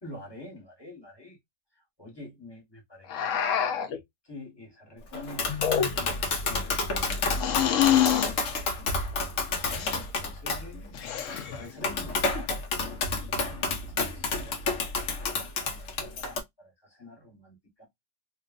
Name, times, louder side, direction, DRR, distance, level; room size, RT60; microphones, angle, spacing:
voice 1, 0.0-1.4 2.0-3.4 4.2-6.2 9.7-11.0 11.6-12.6 13.5-14.8 15.1-17.9, left 1 dB, 15° left, 1.0 m, -47 dB
sound 1, 3.1-4.0 5.5-6.2 7.4-8.3 9.6-10.0 10.9-11.7, left 10 dB, 90° left, 0.7 m, -26 dB
Tap, 5.1-16.4, left 3 dB, 60° left, 0.8 m, -30 dB
3.0 x 2.3 x 2.4 m
omnidirectional pair, 2.0 m